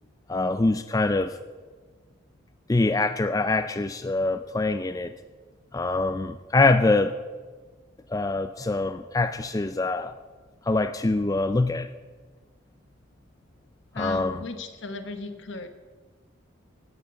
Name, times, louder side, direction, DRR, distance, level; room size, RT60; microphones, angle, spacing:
voice 1, 0.3-1.4 2.7-5.1 5.7-7.1 8.1-10.1 10.7-11.9 14.0-14.4, left 2 dB, 15° left, 9 dB, 0.3 m, -24 dB
voice 2, 13.9-15.7, left 3 dB, 65° left, 8 dB, 1.1 m, -35 dB
17.0 x 6.7 x 7.0 m, 1.4 s
head